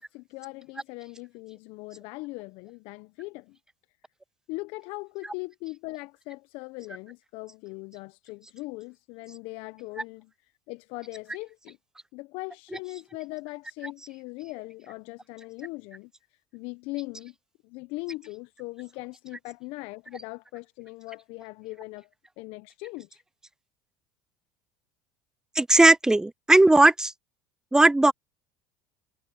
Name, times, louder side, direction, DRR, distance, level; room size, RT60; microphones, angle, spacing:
voice 1, 0.0-3.6 4.5-10.3 10.7-11.8 12.1-16.1 16.5-17.3 17.6-22.1 22.4-23.2, left 23 dB, 65° left, 1.2 m, -40 dB
voice 2, 25.6-27.1 27.7-28.1, right 2 dB, 5° right, 0.4 m, -17 dB
hypercardioid pair, 75°, 10 cm